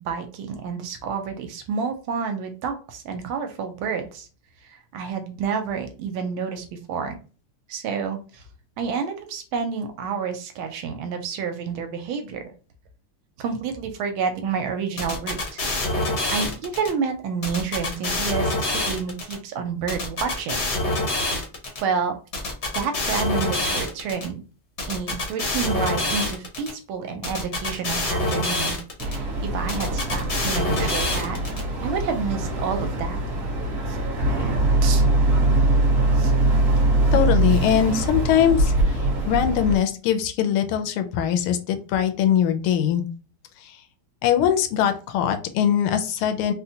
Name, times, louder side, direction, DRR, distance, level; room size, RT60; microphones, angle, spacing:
voice 1, 0.0-4.3 4.6-7.2 7.7-8.4 8.8-12.4 13.4-15.6 16.3-20.6 21.8-22.2 22.7-24.4 24.9-31.4 31.8-33.2 33.9-34.0 34.8-35.0 36.2-36.3, right 6 dB, 80° right, 6 dB, 1.4 m, -29 dB
sound 1, 15.0-16.9 17.4-19.3 19.9-21.8 22.3-24.3 24.8-26.7 27.2-29.2 29.7-31.6, left 2 dB, 55° left, 0.7 m, -26 dB
Boat Water vehicle, 29.0-39.8, right 1 dB, 50° right, 1.1 m, -22 dB
voice 2, 37.1-38.7 39.3-43.0 43.6-43.8 44.2-46.5, left 9 dB, 80° left, 7 dB, 1.4 m, -21 dB
4.0 x 2.1 x 2.7 m, 0.36 s
omnidirectional pair, 2.4 m